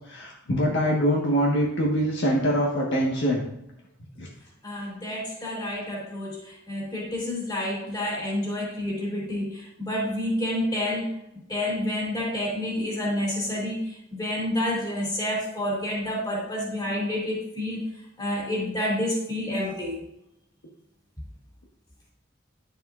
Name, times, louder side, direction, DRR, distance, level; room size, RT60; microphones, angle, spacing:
voice 1, 0.1-3.4 4.2-4.3, equal, 65° left, -2 dB, 1.4 m, -24 dB
voice 2, 4.6-11.1 11.5-17.8 18.2-20.0, left 1 dB, 20° left, -4 dB, 2.7 m, -29 dB
9.6 x 7.4 x 2.5 m, 0.81 s
head